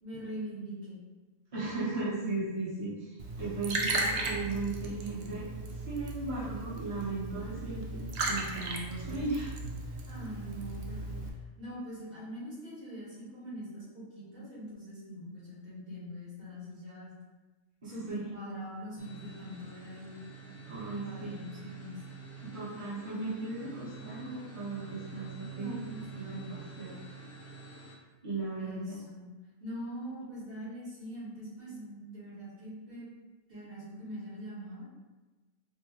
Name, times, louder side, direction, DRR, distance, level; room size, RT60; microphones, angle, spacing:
voice 1, 0.0-1.0 2.2-2.4 10.1-11.1 11.6-17.2 17.8-20.2 20.4-22.0 25.5-26.5 28.6-29.3 29.6-33.1 33.5-34.8, equal, 45° right, -9 dB, 1.8 m, -43 dB
voice 2, 1.5-5.4 5.9-9.5 17.8-18.3 20.6-21.4 22.4-25.9 26.1-27.0 28.2-29.0, right 3 dB, 25° right, -11 dB, 1.0 m, -36 dB
Liquid, 3.2-11.3, right 2 dB, 65° right, 0.7 m, -36 dB
sound 1, 19.0-27.9, right 6 dB, 20° left, 0.4 m, -47 dB
4.9 x 2.0 x 3.0 m, 1.2 s
omnidirectional pair, 1.3 m